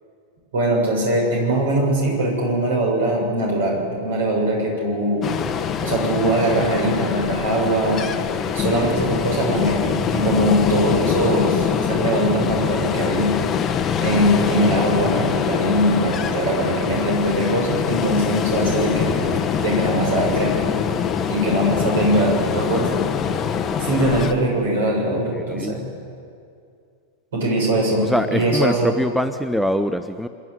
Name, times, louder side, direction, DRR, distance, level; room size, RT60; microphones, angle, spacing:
voice 1, 0.5-5.2 5.8-8.0 8.5-13.4 14.0-20.7 21.3-23.0 23.8-25.8 27.3-28.9, right 1 dB, 60° right, -1 dB, 6.9 m, -21 dB
Ocean, 5.2-24.3, left 7 dB, 25° left, 1.1 m, -24 dB
voice 2, 25.5-25.8 27.9-30.3, equal, ahead, 8 dB, 0.6 m, -23 dB
26.0 x 11.0 x 9.7 m, 2.4 s
figure-of-eight pair, 90°, 0 cm